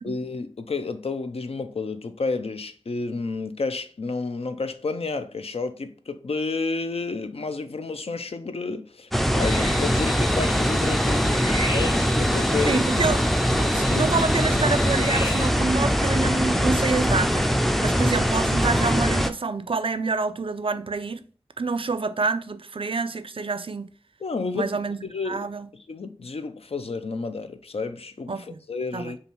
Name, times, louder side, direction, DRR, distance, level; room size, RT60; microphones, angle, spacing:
voice 1, 0.0-12.9 13.5-14.1 24.2-24.7 25.0-25.5 25.7-29.2, left 3 dB, 75° left, 0.5 m, -31 dB
sound 1, 9.1-19.3, equal, ahead, 0.4 m, -22 dB
sound 2, 9.4-15.5, left 1 dB, 50° left, 1.1 m, -34 dB
voice 2, 12.7-13.2 13.7-21.2 21.6-23.9 24.5-25.0 25.3-25.7 28.3-28.6 28.9-29.1, right 4 dB, 60° right, 0.4 m, -27 dB
5.4 x 2.4 x 3.0 m
wide cardioid pair, 60°, 10 cm